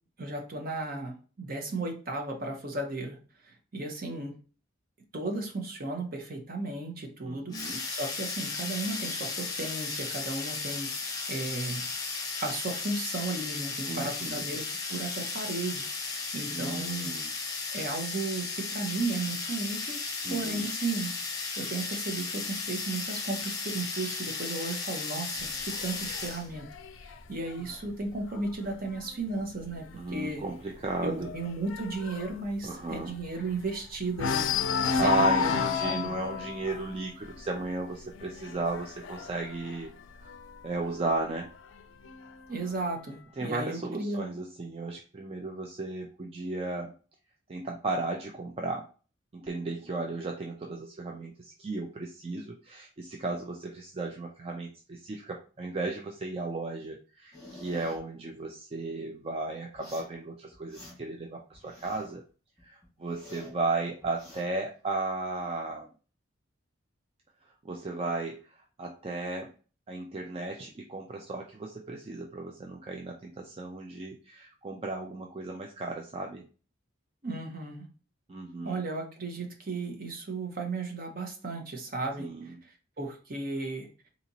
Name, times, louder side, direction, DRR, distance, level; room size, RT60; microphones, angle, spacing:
voice 1, 0.2-3.2 3.4-4.3 5.1-11.9 12.4-17.1 17.7-20.0 20.3-21.1 21.6-26.7 27.1-30.4 31.0-34.5 34.9-36.1 42.5-44.3 77.2-77.9 78.6-83.9, right 3 dB, 45° right, 3 dB, 0.8 m, -35 dB
voice 2, 7.2-7.8 13.8-14.4 16.5-17.3 20.2-20.6 29.9-31.3 32.6-33.1 35.0-39.9 40.2-40.3 40.6-41.5 43.4-46.9 47.5-48.8 49.3-62.2 62.6-65.9 67.6-69.5 69.9-76.4 78.3-78.8 82.2-82.5, right 3 dB, 30° right, 1 dB, 0.4 m, -35 dB
sound 1, 7.5-26.5, left 4 dB, 20° left, 0.7 m, -35 dB
sound 2, 25.4-29.0 29.4-29.7 30.0-30.1 30.5-33.8 34.1-40.7 41.5-42.5, left 6 dB, 80° left, 0.4 m, -32 dB
sound 3, 57.3-58.0 59.7-60.1 60.5-61.2 61.5-62.2 62.6-63.6 64.0-64.5, left 1 dB, ahead, 1.5 m, -49 dB
4.0 x 2.8 x 2.8 m, 0.37 s
head